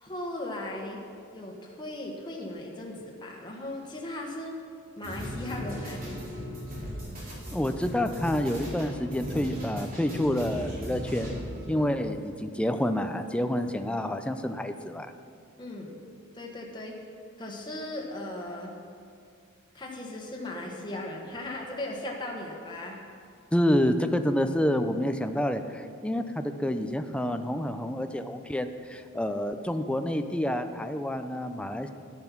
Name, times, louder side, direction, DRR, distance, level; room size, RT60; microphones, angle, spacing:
voice 1, 0.0-1.0 1.3-4.6 5.0-6.2 11.7-11.9 15.6-16.0 16.3-17.0 17.4-18.7 19.7-23.0, left 1 dB, 20° left, -1 dB, 1.4 m, -37 dB
sound 1, 5.0-11.7, equal, 45° right, 3.5 m, -37 dB
voice 2, 7.5-11.3 11.7-15.1 23.5-31.9, left 1 dB, 5° left, 7 dB, 0.5 m, -28 dB
11.0 x 9.9 x 5.9 m, 2.3 s
head